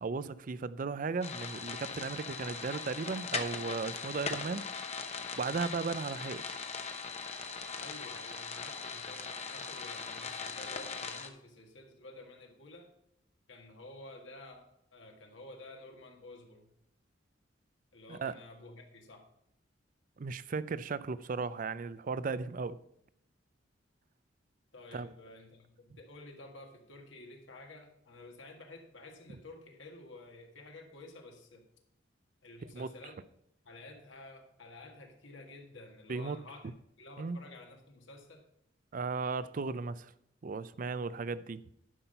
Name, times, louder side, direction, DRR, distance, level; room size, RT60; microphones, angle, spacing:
voice 1, 0.0-4.7 5.4-6.6 18.1-18.4 20.2-22.8 24.9-25.1 32.7-32.9 36.1-36.4 37.2-37.4 38.9-40.1 40.4-41.6, right 4 dB, 45° right, 0.4 m, -36 dB
sound 1, 1.2-11.3, left 5 dB, 35° left, 0.9 m, -40 dB
voice 2, 7.8-12.9 13.5-16.7 17.9-19.3 24.7-31.7 32.4-33.2 33.6-36.7 37.0-38.4, left 2 dB, 70° left, 1.7 m, -51 dB
11.0 x 5.7 x 5.5 m
head